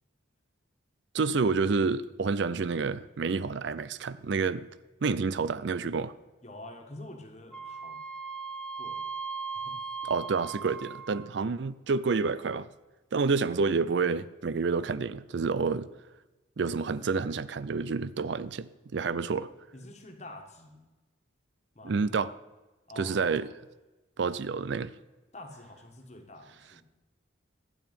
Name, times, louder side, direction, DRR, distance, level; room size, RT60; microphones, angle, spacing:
voice 1, 1.1-4.7 5.0-6.1 10.1-12.7 13.1-15.9 16.6-19.5 21.8-22.3 23.0-23.5 24.2-24.9, right 4 dB, 65° right, 17 dB, 0.4 m, -29 dB
voice 2, 6.4-8.0 8.8-9.1 9.5-9.8 19.0-19.2 19.7-20.8 21.7-21.9 22.9-23.5 25.3-26.8, left 1 dB, 35° left, 3 dB, 1.6 m, -47 dB
Wind instrument woodwind instrument, 7.5-11.4, right 5 dB, 5° left, 0.6 m, -38 dB
12.0 x 9.0 x 5.3 m, 1.1 s
head